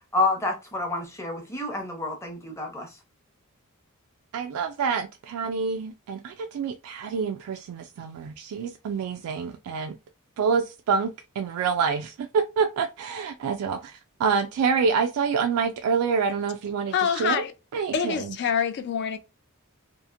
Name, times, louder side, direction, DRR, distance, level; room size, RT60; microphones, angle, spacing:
voice 1, 0.1-2.9, left 2 dB, 15° left, 0.7 m, -28 dB
voice 2, 4.3-10.0 10.4-17.4 17.7-18.3, right 5 dB, 80° right, 0.3 m, -27 dB
voice 3, 16.9-17.5 17.9-19.2, left 7 dB, 50° left, 0.3 m, -26 dB
2.8 x 2.4 x 2.4 m
head